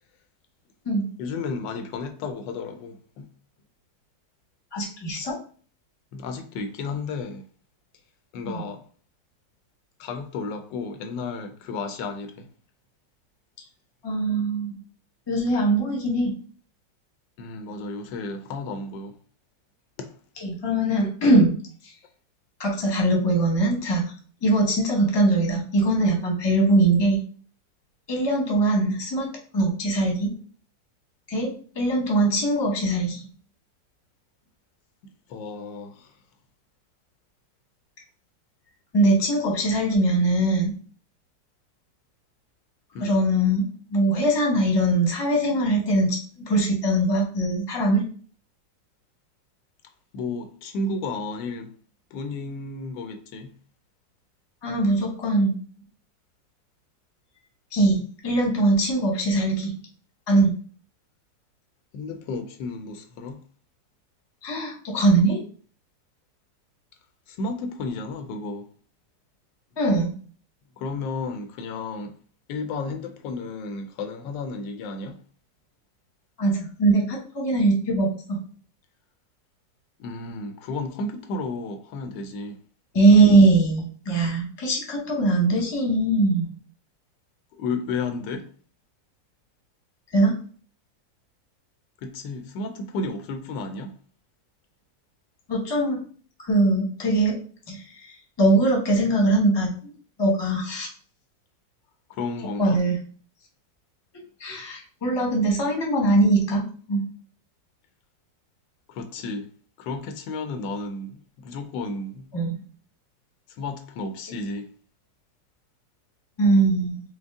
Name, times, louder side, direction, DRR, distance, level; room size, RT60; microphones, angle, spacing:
voice 1, 1.2-3.3 6.1-7.5 8.3-8.8 10.0-12.5 17.4-19.2 20.0-20.1 35.3-36.1 42.9-43.2 50.1-51.7 52.1-53.5 61.9-63.4 67.3-68.7 70.8-72.1 72.5-75.2 80.0-82.6 87.5-88.5 92.0-93.9 102.1-102.8 108.9-109.5 109.8-112.3 113.5-114.7, left 3 dB, 80° left, 1.2 m, -33 dB
voice 2, 4.7-5.4 8.5-8.6 14.0-14.7 15.3-16.3 20.4-21.5 22.6-24.0 24.4-27.2 28.1-29.3 29.5-30.3 31.3-33.2 38.9-40.7 43.0-48.0 54.6-55.5 57.7-59.7 60.3-60.5 64.4-65.4 69.8-70.1 76.4-78.4 82.9-86.5 90.1-90.3 95.5-96.0 96.4-97.4 97.7-99.9 100.2-100.9 102.6-103.0 104.4-107.0 112.3-112.6 116.4-117.0, right 2 dB, 20° left, 0.8 m, -21 dB
5.1 x 2.0 x 3.5 m
omnidirectional pair, 2.0 m